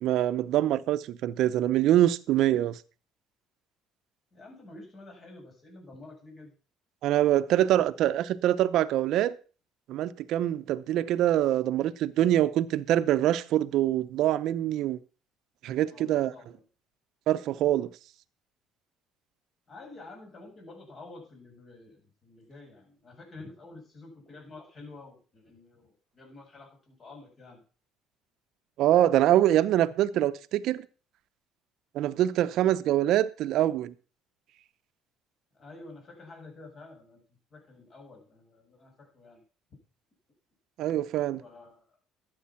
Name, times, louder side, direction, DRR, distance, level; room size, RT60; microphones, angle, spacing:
voice 1, 0.0-2.8 7.0-9.3 9.9-15.0 15.6-16.3 17.3-17.9 28.8-30.8 31.9-33.9 40.8-41.4, right 12 dB, 70° right, 0.8 m, -24 dB
voice 2, 4.3-6.5 15.9-16.6 19.7-27.6 35.5-37.2 37.5-39.4 41.3-42.0, left 2 dB, 40° left, 7.9 m, -49 dB
12.5 x 8.6 x 5.8 m
supercardioid pair, 85°, 0 cm